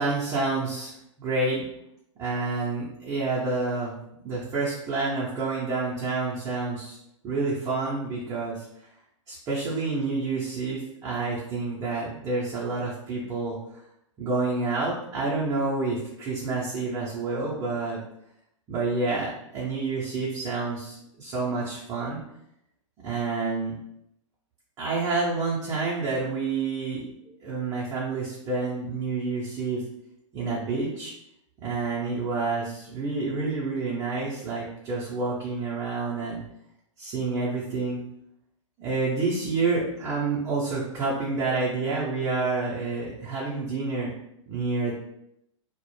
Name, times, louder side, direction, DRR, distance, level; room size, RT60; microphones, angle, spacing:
voice 1, 0.0-1.7 2.2-4.0 4.2-7.0 7.2-8.7 9.3-13.6 14.2-18.0 18.7-22.2 23.0-23.7 24.8-27.1 27.4-29.8 30.3-31.1 31.6-36.4 37.0-38.0 38.8-44.1 44.5-44.9, right 3 dB, 20° right, -5 dB, 0.5 m, -28 dB
2.1 x 2.0 x 3.0 m, 0.78 s
figure-of-eight pair, 105°, 17 cm